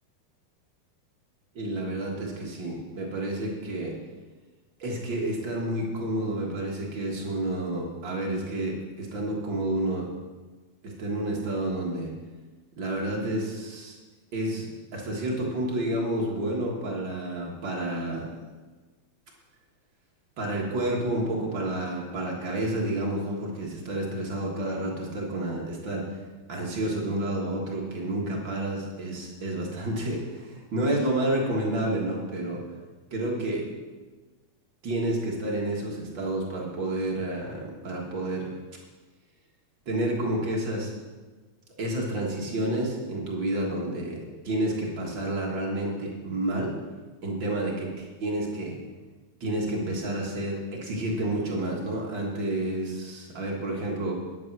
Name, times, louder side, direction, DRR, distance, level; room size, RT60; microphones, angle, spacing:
voice 1, 1.5-4.0 4.8-10.1 10.8-12.2 12.8-14.0 14.3-14.7 14.9-18.3 20.4-26.2 26.5-32.6 33.1-33.7 34.8-38.5 39.8-40.9 41.8-46.7 47.2-48.8 49.4-54.1, right 1 dB, 45° right, -2 dB, 1.6 m, -30 dB
10.5 x 9.1 x 6.1 m, 1.3 s
omnidirectional pair, 4.3 m